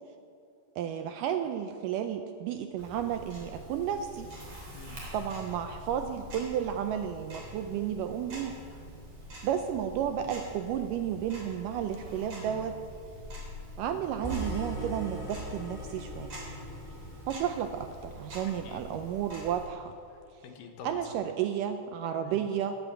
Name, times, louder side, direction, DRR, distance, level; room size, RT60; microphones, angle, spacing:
voice 1, 0.8-4.3 5.1-8.6 9.4-12.8 13.8-16.4 17.3-19.9 20.8-22.8, right 9 dB, 80° right, 7 dB, 2.0 m, -32 dB
Tick-tock, 2.8-19.7, equal, 40° right, 4.3 m, -46 dB
voice 2, 4.7-5.1 18.5-18.8 20.1-21.3 22.2-22.5, left 5 dB, 70° left, 4 dB, 2.8 m, -47 dB
sound 1, 14.2-18.3, right 1 dB, 5° left, 2.1 m, -40 dB
17.0 x 9.0 x 7.4 m, 2.5 s
omnidirectional pair, 4.3 m